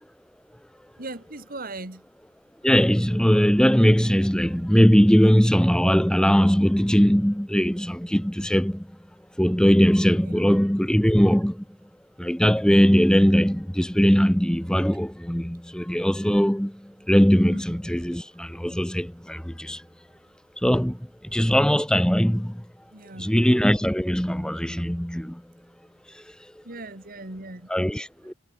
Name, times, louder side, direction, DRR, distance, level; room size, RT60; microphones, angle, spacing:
voice 1, 1.0-2.0 10.2-10.3 17.5-17.6 22.9-23.4 26.6-27.7, right 2 dB, 50° right, 3.1 m, -38 dB
voice 2, 2.6-8.9 9.4-11.6 12.2-19.8 20.6-22.6 23.2-25.4 26.1-26.5 27.7-28.3, equal, 5° left, 1.1 m, -20 dB
head